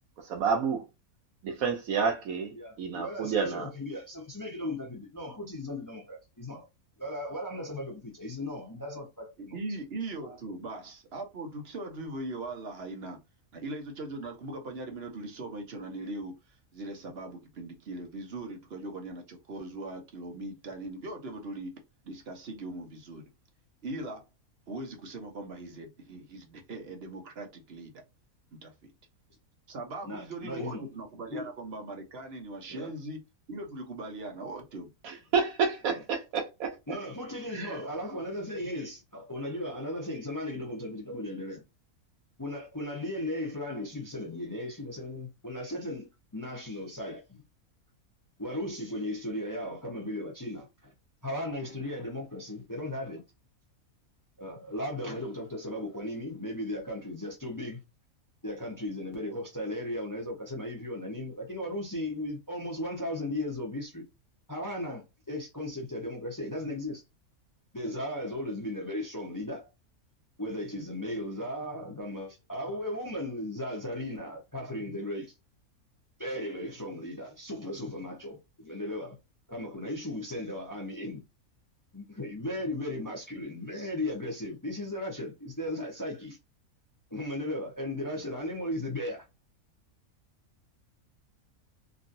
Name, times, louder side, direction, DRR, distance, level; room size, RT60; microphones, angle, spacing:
voice 1, 0.2-0.8 1.4-3.7 35.0-36.7 37.5-37.7, right 5 dB, 75° right, 1.1 m, -29 dB
voice 2, 2.5-6.7 7.0-9.6 10.2-10.4 30.0-30.9 31.3-31.5 32.7-32.9 35.9-36.0 36.9-41.6 42.4-47.4 48.4-50.9 51.2-53.2 54.4-57.8 58.4-64.0 64.5-67.0 67.7-69.6 70.4-75.3 76.2-79.2 79.5-81.2 81.9-86.4 87.1-89.3, left 1 dB, 20° left, 0.6 m, -36 dB
voice 3, 9.4-13.2 13.5-16.4 16.7-21.7 22.0-23.2 23.8-24.2 24.7-28.0 28.5-28.7 29.7-33.2 33.5-34.9, right 2 dB, 50° right, 1.0 m, -40 dB
3.0 x 2.6 x 2.6 m
omnidirectional pair, 1.5 m